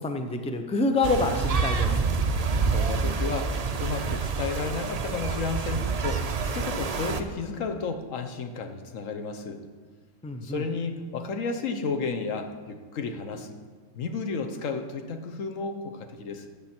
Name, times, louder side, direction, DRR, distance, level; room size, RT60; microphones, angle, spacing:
voice 1, 0.0-1.9 10.2-10.6, left 3 dB, 5° left, 5 dB, 0.5 m, -27 dB
sound 1, 1.0-7.2, right 4 dB, 40° right, 0.6 m, -27 dB
voice 2, 2.6-9.6 10.4-13.6 14.0-16.5, left 4 dB, 85° left, 6 dB, 1.3 m, -32 dB
12.5 x 8.2 x 4.4 m, 1.5 s
omnidirectional pair, 1.3 m